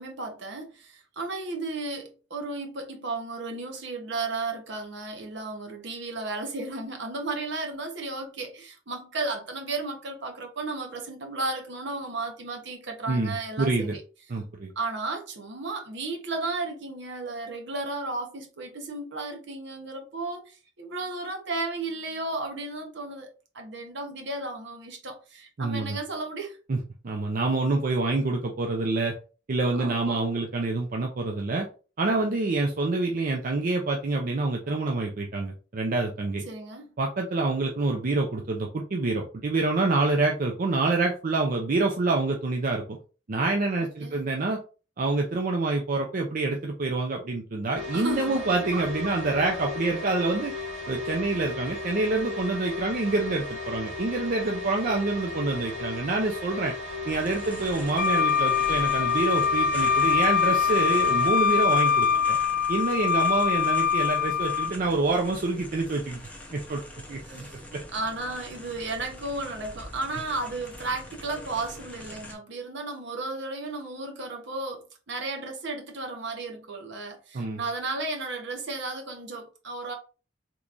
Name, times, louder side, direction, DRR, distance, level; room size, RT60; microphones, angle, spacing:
voice 1, 0.0-14.0 14.8-23.3 23.5-26.6 29.7-30.2 36.5-36.9 43.8-44.2 47.9-48.8 62.1-62.2 67.2-67.6 67.9-80.0, right 3 dB, 65° right, 0.9 m, -34 dB
voice 2, 13.1-14.0 14.3-14.7 25.6-26.0 26.7-29.1 29.5-31.7 32.0-36.4 37.0-43.0 43.3-44.6 45.0-50.5 50.9-56.7 57.1-62.4 62.7-66.2 66.5-66.8 67.1-67.5 77.3-77.6, right 3 dB, 45° right, 0.5 m, -27 dB
sound 1, 47.8-61.3, left 3 dB, 85° right, 1.8 m, -36 dB
sound 2, 57.1-72.3, left 1 dB, 5° left, 0.7 m, -44 dB
Wind instrument woodwind instrument, 58.0-64.7, left 7 dB, 45° left, 0.4 m, -23 dB
3.7 x 3.0 x 2.5 m
head